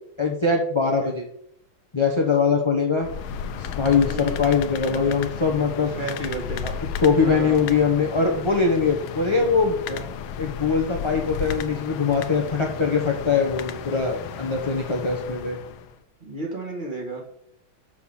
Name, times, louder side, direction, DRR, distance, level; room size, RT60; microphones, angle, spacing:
voice 1, 0.2-1.2 1.9-3.1 3.6-5.9 6.6-6.7 7.0-9.8 10.4-15.6, left 5 dB, 20° left, 1 dB, 0.8 m, -22 dB
voice 2, 0.8-1.1 4.1-4.5 5.9-6.6 7.2-7.7 9.9-10.0 16.2-17.2, right 2 dB, 25° right, -1 dB, 2.0 m, -32 dB
sound 1, 3.0-15.9, left 7 dB, 85° left, 1.6 m, -34 dB
7.0 x 6.4 x 7.2 m, 0.70 s
omnidirectional pair, 2.2 m